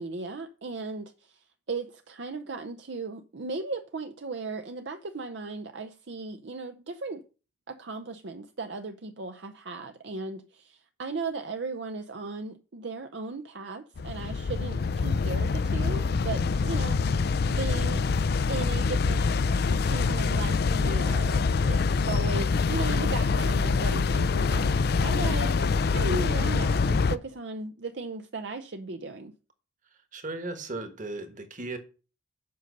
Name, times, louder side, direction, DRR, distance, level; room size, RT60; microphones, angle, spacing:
voice 1, 0.0-7.2 7.7-18.0 18.5-29.3, right 3 dB, 60° right, 0.6 m, -37 dB
sound 1, 14.0-27.2, left 4 dB, 50° left, 0.4 m, -25 dB
voice 2, 30.1-31.8, right 2 dB, 40° right, 1.4 m, -36 dB
7.8 x 5.3 x 6.6 m
head